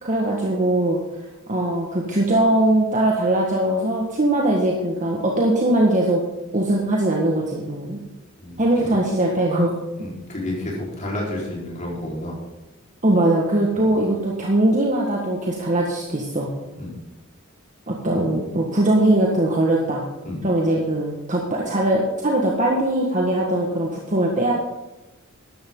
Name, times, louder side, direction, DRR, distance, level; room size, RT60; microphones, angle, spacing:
voice 1, 0.0-1.0 1.5-6.2 6.5-8.0 8.6-9.7 13.0-16.5 17.9-20.0 20.4-24.5, right 1 dB, 40° right, -2 dB, 1.7 m, -21 dB
voice 2, 10.0-12.4 13.7-13.9 16.8-17.0 20.2-20.4, left 1 dB, 35° left, -3 dB, 4.4 m, -30 dB
13.5 x 11.5 x 3.9 m, 1.0 s
head